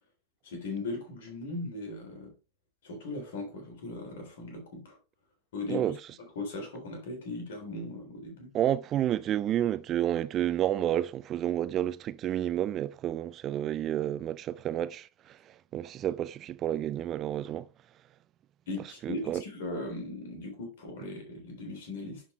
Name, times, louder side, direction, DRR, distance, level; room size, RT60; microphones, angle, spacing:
voice 1, 0.4-2.3 2.8-5.0 5.5-5.9 6.4-8.5 18.7-22.2, left 2 dB, 55° left, 3.5 m, -38 dB
voice 2, 8.5-15.4 15.7-17.7 19.0-19.4, right 11 dB, 30° right, 0.4 m, -30 dB
10.5 x 4.5 x 3.2 m
figure-of-eight pair, 90°, 0 cm